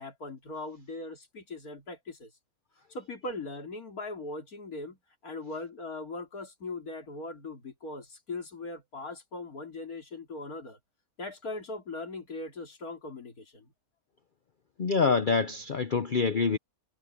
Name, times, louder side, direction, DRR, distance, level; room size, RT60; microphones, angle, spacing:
voice 1, 0.0-2.3 2.9-10.8 11.2-13.7, left 2 dB, 75° left, 3.5 m, -40 dB
voice 2, 14.8-16.6, left 5 dB, 45° left, 0.7 m, -26 dB
omnidirectional pair, 1.5 m